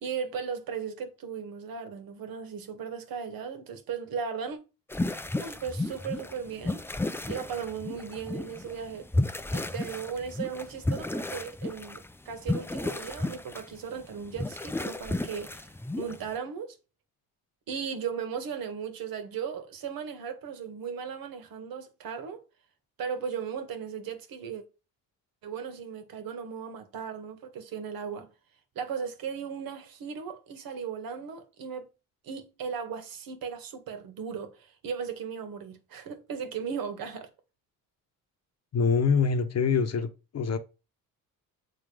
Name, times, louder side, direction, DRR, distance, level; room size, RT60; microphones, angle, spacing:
voice 1, 0.0-4.6 5.4-6.8 7.3-9.1 9.5-16.8 17.7-22.4 23.0-24.6 25.4-28.3 28.8-31.9 32.2-37.3, right 6 dB, 70° right, 1.8 m, -37 dB
sound 1, 4.9-16.4, left 2 dB, 5° left, 0.5 m, -33 dB
voice 2, 38.7-40.6, left 5 dB, 45° left, 1.1 m, -25 dB
7.3 x 3.9 x 5.0 m
cardioid pair, 95°, 36 cm